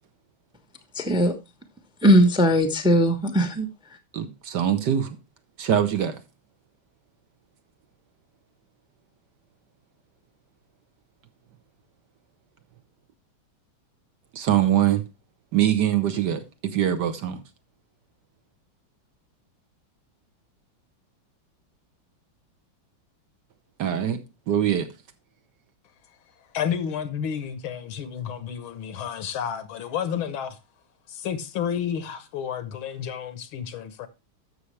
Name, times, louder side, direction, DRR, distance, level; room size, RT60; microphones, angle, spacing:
voice 1, 1.0-1.3 2.0-3.7, equal, 5° right, 0.7 m, -19 dB
voice 2, 4.1-5.2 5.6-6.2 14.3-15.0 15.5-17.4 23.8-24.2 24.5-24.9, right 10 dB, 60° right, 1.4 m, -23 dB
voice 3, 26.5-30.6 31.1-34.1, left 8 dB, 80° left, 1.8 m, -31 dB
13.0 x 6.7 x 3.3 m
omnidirectional pair, 2.2 m